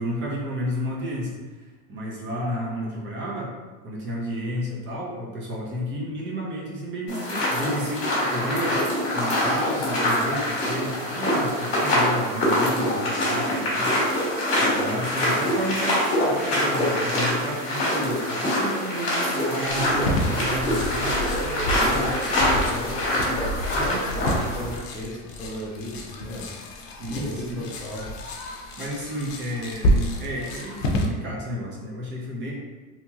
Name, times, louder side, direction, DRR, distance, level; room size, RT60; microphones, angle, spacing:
voice 1, 0.0-3.5 3.8-8.9 9.1-13.9 14.6-21.1 21.8-22.1 23.7-24.0 26.9-27.6 28.5-32.5, equal, 30° right, -3 dB, 0.6 m, -31 dB
sound 1, 7.1-24.8, left 1 dB, 35° left, 1.2 m, -24 dB
voice 2, 14.6-15.0 21.3-26.5 27.0-28.0, left 1 dB, 10° left, -11 dB, 0.4 m, -35 dB
sound 2, 19.6-31.1, equal, 85° left, 0.6 m, -29 dB
2.9 x 2.7 x 2.3 m, 1.3 s
supercardioid pair, 150°, 37 cm